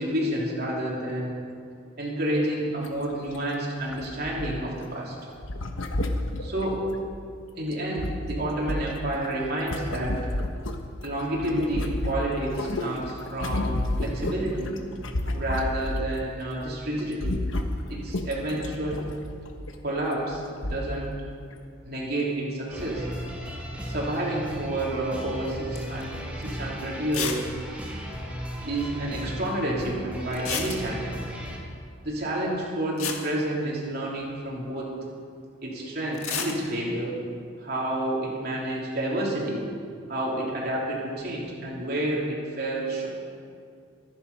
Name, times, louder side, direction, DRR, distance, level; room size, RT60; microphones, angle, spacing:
voice 1, 0.0-1.3 2.0-5.1 6.4-6.9 7.6-10.2 11.0-14.7 15.3-17.4 17.9-19.1 19.8-20.4 20.7-21.1 21.8-23.1 23.9-27.4 28.6-31.1 32.0-34.9 35.6-37.1 37.6-39.7 40.1-43.1, right 1 dB, 45° right, -4 dB, 3.3 m, -29 dB
sound 1, 2.8-3.0 3.3-3.4 3.9-4.8 5.4-7.2 7.7-11.1 11.4-16.2 16.5-16.7 17.0-19.7 20.3-20.4 20.6-21.1 21.5-21.6, left 1 dB, 65° left, 1.2 m, -31 dB
sound 2, 22.7-31.6, equal, 5° right, 2.3 m, -36 dB
sound 3, 25.8-26.0 26.4-26.5 27.1-27.5 27.7-27.8 28.0-28.1 30.3-31.2 32.6-32.7 33.0-34.2 36.1-36.6, left 7 dB, 90° left, 1.9 m, -31 dB
24.0 x 10.0 x 5.5 m, 2.3 s
head